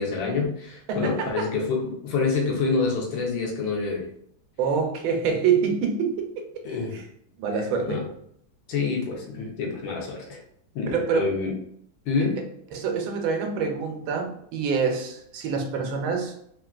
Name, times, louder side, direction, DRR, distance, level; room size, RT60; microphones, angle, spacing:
voice 1, 0.0-4.1 6.6-7.0 7.5-8.1 8.7-10.4 10.7-11.5 12.1-12.4, left 4 dB, 75° left, -1 dB, 1.5 m, -27 dB
voice 2, 0.9-1.5 4.6-6.5 6.9-7.0 7.4-8.0 10.9-11.3 12.7-16.3, right 6 dB, 85° right, 4 dB, 1.4 m, -26 dB
3.7 x 2.4 x 2.3 m, 0.70 s
omnidirectional pair, 2.2 m